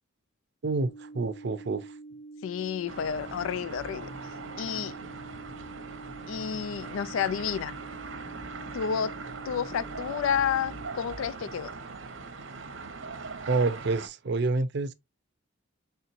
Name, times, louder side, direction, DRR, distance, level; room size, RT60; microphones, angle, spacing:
voice 1, 0.6-1.9 13.5-14.9, right 3 dB, 60° right, 0.6 m, -28 dB
sound 1, 0.9-10.9, right 2 dB, ahead, 0.8 m, -46 dB
voice 2, 2.4-4.1 4.6-4.9 6.3-7.8 8.7-9.2 9.5-11.7, left 7 dB, 90° left, 0.4 m, -30 dB
sound 2, 2.9-14.1, right 4 dB, 90° right, 0.9 m, -41 dB
4.4 x 3.7 x 2.6 m
head